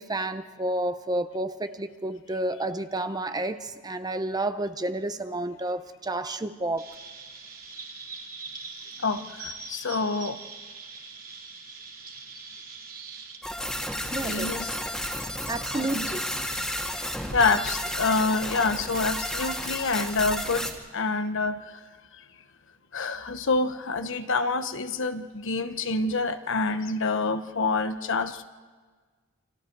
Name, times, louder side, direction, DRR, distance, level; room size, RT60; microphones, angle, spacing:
voice 1, 0.0-6.9 14.1-14.5 15.5-16.2, right 1 dB, 20° right, 10 dB, 0.8 m, -30 dB
Chirp tweet, 6.8-13.4, right 4 dB, 45° right, 2.9 m, -42 dB
voice 2, 9.0-10.4 14.2-14.8 15.7-16.1 17.3-21.8 22.9-28.4, left 3 dB, 60° left, 9 dB, 1.1 m, -27 dB
sound 1, 13.4-20.7, equal, 5° left, 2.1 m, -32 dB
29.0 x 26.0 x 4.7 m, 1.4 s
head